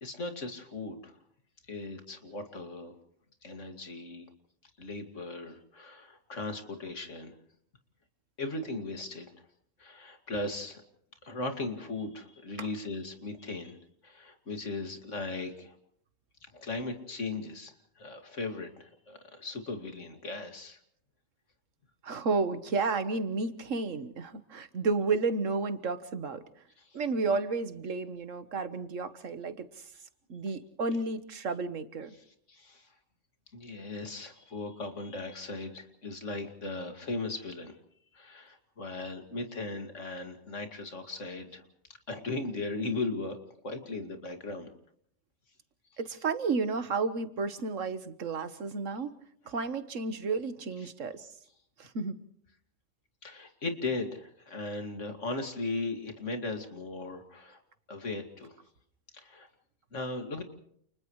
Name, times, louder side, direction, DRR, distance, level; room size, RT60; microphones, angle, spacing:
voice 1, 0.0-1.2 1.7-2.9 3.4-4.3 4.8-7.3 8.4-9.3 9.8-10.8 11.2-13.8 14.0-15.8 16.4-20.8 26.8-27.0 32.1-32.9 33.5-37.7 38.1-41.6 42.1-43.4 43.6-44.7 53.2-57.6 57.9-58.6 59.1-59.5 59.9-60.4, left 2 dB, 75° left, 5 dB, 2.7 m, -37 dB
voice 2, 22.0-26.4 26.9-29.7 30.3-32.1 46.0-49.1 49.4-51.3 51.8-52.1, right 4 dB, 85° right, 11 dB, 1.7 m, -32 dB
29.5 x 29.0 x 3.2 m, 0.68 s
omnidirectional pair, 1.3 m